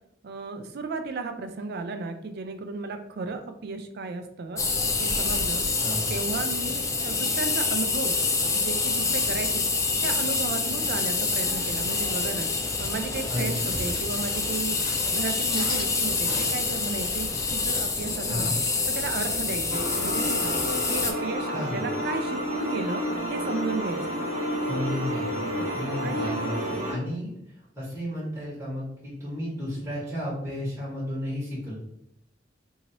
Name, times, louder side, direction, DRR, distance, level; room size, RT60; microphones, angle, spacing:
voice 1, 0.2-4.6 5.0-5.6 6.1-8.1 8.5-9.6 10.0-12.5 12.8-14.8 15.0-18.5 18.9-20.5 20.9-24.2 25.5-25.7 26.0-26.4, right 4 dB, 60° right, 7 dB, 0.4 m, -34 dB
sound 1, 4.6-21.1, left 4 dB, 15° left, 0.4 m, -27 dB
sound 2, 11.2-17.5, left 1 dB, 55° left, 0.9 m, -41 dB
sound 3, 19.7-26.9, equal, 40° right, 1.3 m, -30 dB
voice 2, 21.5-21.8 24.7-31.7, left 1 dB, 15° right, -9 dB, 1.3 m, -33 dB
2.9 x 2.7 x 2.8 m, 0.75 s
head